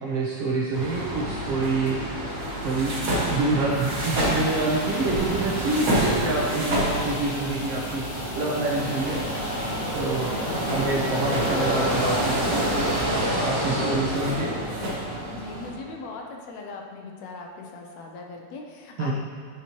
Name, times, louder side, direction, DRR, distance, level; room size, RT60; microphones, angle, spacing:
voice 1, 0.0-2.0 2.6-9.2 9.9-10.3 10.7-12.6 13.4-14.5 19.0-19.1, right 3 dB, 70° right, -3 dB, 1.5 m, -26 dB
sound 1, 0.7-15.7, equal, 45° right, 2.0 m, -28 dB
sound 2, 3.7-13.0, left 2 dB, 60° left, 1.2 m, -40 dB
voice 2, 13.6-14.2 15.3-19.1, left 3 dB, 75° left, 1 dB, 1.8 m, -39 dB
9.6 x 5.8 x 3.0 m, 2.4 s
omnidirectional pair, 3.3 m